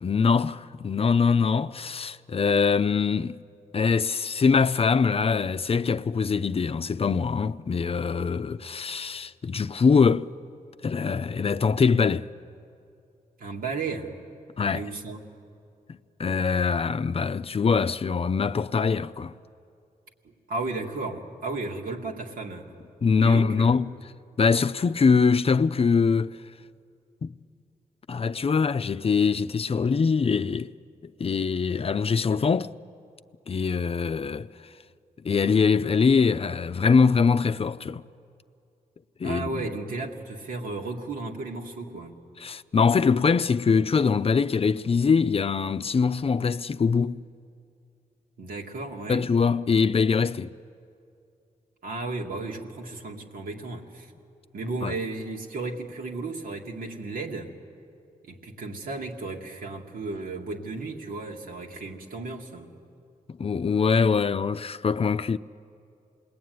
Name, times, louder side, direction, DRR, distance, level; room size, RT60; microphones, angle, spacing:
voice 1, 0.0-3.4 3.7-10.3 10.8-12.3 14.6-14.8 15.9-19.3 23.0-23.9 24.4-26.4 27.2-27.3 28.1-30.7 31.2-32.7 33.5-34.5 35.2-38.0 39.2-39.7 42.4-47.2 49.1-50.5 54.8-54.9 63.4-65.4, left 5 dB, 40° left, 0.5 m, -23 dB
voice 2, 13.4-14.2 14.7-15.3 20.2-22.7 23.2-23.8 39.2-42.2 48.4-49.3 51.8-54.1 54.5-57.5 58.2-62.7, right 3 dB, 90° right, 2.3 m, -34 dB
28.0 x 20.5 x 9.5 m
cardioid pair, 85°, 15 cm